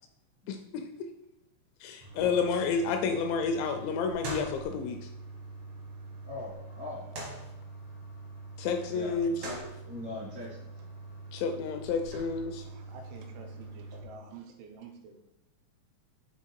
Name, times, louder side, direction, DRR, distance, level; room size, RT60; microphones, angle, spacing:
voice 1, 0.5-1.1 1.8-5.1 8.6-9.5 11.3-12.7, left 5 dB, 85° left, 5 dB, 2.6 m, -30 dB
sound 1, 2.0-14.0, right 2 dB, 70° right, 1.4 m, -43 dB
voice 2, 6.2-7.1 8.9-10.7, left 2 dB, 30° right, -7 dB, 0.4 m, -41 dB
voice 3, 12.6-15.3, right 5 dB, 85° right, 4 dB, 3.2 m, -49 dB
7.2 x 3.8 x 4.6 m, 0.84 s
omnidirectional pair, 5.5 m